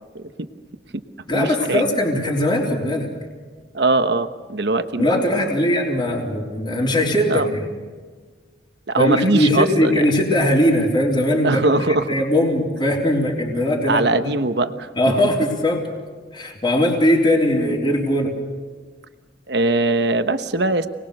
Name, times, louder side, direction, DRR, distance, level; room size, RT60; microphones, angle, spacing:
voice 1, 0.1-0.5 1.3-1.8 3.7-5.4 7.3-7.5 8.9-10.0 11.4-12.1 13.9-14.9 19.5-20.9, right 2 dB, 65° right, 9 dB, 1.1 m, -21 dB
voice 2, 1.3-3.1 5.0-7.7 9.0-11.6 11.9-14.3 15.0-15.8 16.3-18.3, left 1 dB, 25° left, -3 dB, 3.6 m, -20 dB
28.5 x 20.5 x 6.6 m, 1.5 s
head